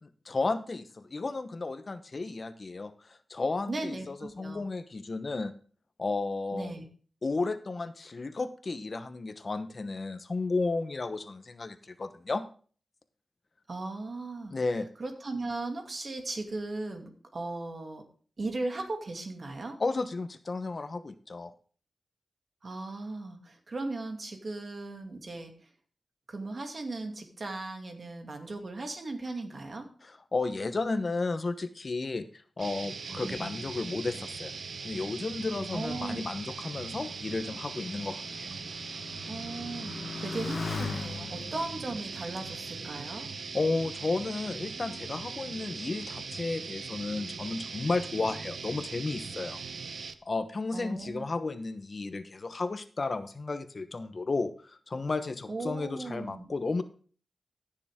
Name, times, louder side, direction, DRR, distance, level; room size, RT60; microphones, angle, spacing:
voice 1, 0.0-5.5 6.0-6.7 7.2-12.4 14.5-14.9 19.8-21.5 30.0-34.5 34.8-38.5 43.5-49.6 50.3-56.8, left 3 dB, 50° left, 11 dB, 1.0 m, -33 dB
voice 2, 3.7-4.6 6.5-6.8 13.7-14.6 15.0-18.0 18.4-19.8 22.6-25.7 26.3-29.9 33.2-33.6 35.7-36.4 39.3-43.3 50.7-51.2 55.5-56.5, right 2 dB, 55° right, 4 dB, 2.5 m, -37 dB
sound 1, 32.6-50.1, right 5 dB, 75° right, 0.8 m, -40 dB
Motorcycle, 34.8-43.8 44.5-45.1, left 4 dB, 75° left, 1.2 m, -42 dB
15.0 x 6.9 x 3.6 m, 0.42 s
cardioid pair, 55°, 0 cm